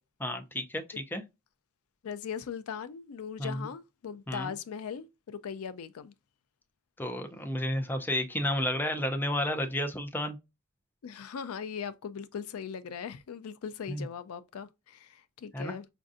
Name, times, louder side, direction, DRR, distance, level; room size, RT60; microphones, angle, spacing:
voice 1, 0.2-1.2 3.4-3.7 4.3-4.5 7.0-10.4 13.9-14.0 15.5-15.7, left 1 dB, 10° left, 0.4 m, -32 dB
voice 2, 2.0-6.1 11.0-15.9, left 7 dB, 85° left, 0.4 m, -39 dB
5.0 x 2.6 x 2.4 m
head